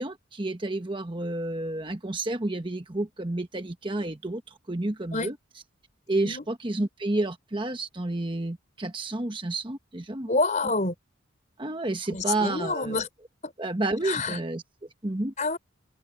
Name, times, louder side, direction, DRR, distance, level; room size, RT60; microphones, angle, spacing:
voice 1, 0.0-5.4 6.1-10.4 11.6-13.0 13.6-14.6 15.0-15.3, right 2 dB, 25° right, 1.2 m, -30 dB
voice 2, 10.3-10.9 12.1-13.1 13.4-13.5 14.0-14.4 15.4-15.6, left 3 dB, 40° left, 3.9 m, -27 dB
head